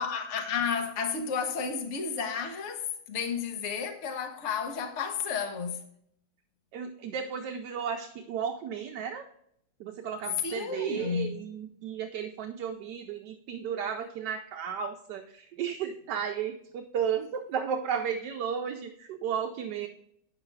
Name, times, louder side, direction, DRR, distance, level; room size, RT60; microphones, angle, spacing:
voice 1, 0.0-5.8 10.4-11.4, left 6 dB, 45° left, 1.0 m, -32 dB
voice 2, 6.7-9.2 9.8-19.9, right 7 dB, 70° right, 1.1 m, -34 dB
9.0 x 5.8 x 3.2 m
omnidirectional pair, 2.2 m